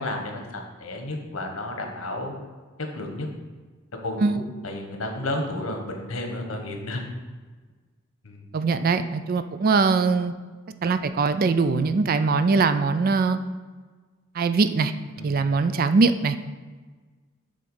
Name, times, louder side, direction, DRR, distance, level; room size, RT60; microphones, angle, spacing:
voice 1, 0.0-2.4 2.9-3.3 4.0-7.0 8.2-8.5 15.2-15.3, left 1 dB, 85° left, 3 dB, 1.2 m, -32 dB
voice 2, 8.5-10.3 10.8-13.4 14.4-14.9 15.2-16.4, right 4 dB, 45° right, 11 dB, 0.4 m, -21 dB
7.8 x 3.7 x 5.4 m, 1.4 s
head